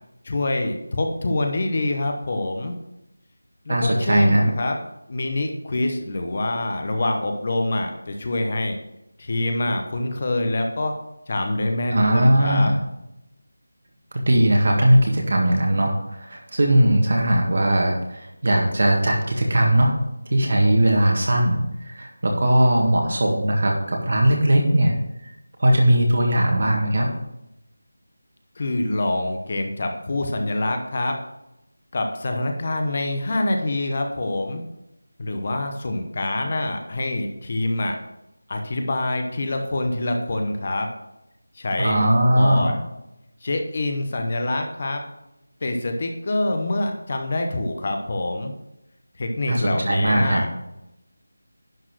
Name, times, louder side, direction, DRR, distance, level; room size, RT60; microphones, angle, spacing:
voice 1, 0.2-2.7 3.7-4.8 5.1-8.8 9.2-10.9 11.3-12.7 28.6-31.2 31.9-34.6 35.2-38.0 38.5-40.9 41.5-42.0 42.3-42.8 43.4-45.0 45.6-48.5 49.2-50.6, left 2 dB, 30° left, 4 dB, 0.9 m, -25 dB
voice 2, 3.7-4.4 11.9-12.7 14.1-19.9 20.3-25.0 25.6-27.1 41.8-42.8 49.5-50.4, right 1 dB, 45° right, 1 dB, 1.7 m, -19 dB
11.0 x 4.3 x 5.9 m, 0.87 s
figure-of-eight pair, 180°, 0 cm